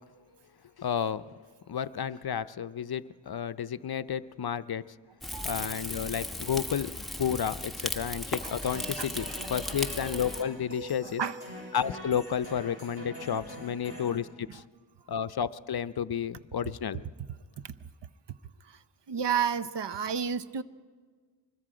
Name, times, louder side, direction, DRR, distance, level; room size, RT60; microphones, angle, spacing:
voice 1, 0.8-1.3 1.7-4.9 5.4-11.3 11.7-14.6 15.1-17.0, left 8 dB, 55° left, 14 dB, 0.6 m, -32 dB
Rain / Fire, 5.2-10.4, left 1 dB, ahead, 1.2 m, -36 dB
voice 2, 5.3-5.7 9.0-9.1 11.0-11.4 14.5-14.6 17.6-17.8 18.6-18.8 19.1-20.6, right 7 dB, 65° right, 14 dB, 0.7 m, -31 dB
sound 1, 8.6-14.2, equal, 30° right, 6.8 m, -43 dB
24.5 x 21.5 x 5.0 m, 1.5 s
wide cardioid pair, 70°, 45 cm